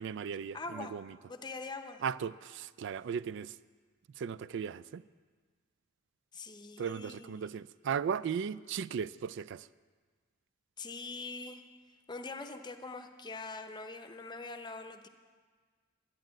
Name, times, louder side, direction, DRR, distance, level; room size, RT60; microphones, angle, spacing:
voice 1, 0.0-1.1 2.0-3.5 4.2-5.0 6.8-9.7, right 7 dB, 60° right, 0.3 m, -36 dB
voice 2, 0.5-0.9 1.3-2.0 6.3-7.5 10.8-11.6 12.1-15.1, left 3 dB, 20° left, 0.7 m, -43 dB
11.5 x 10.5 x 7.6 m
head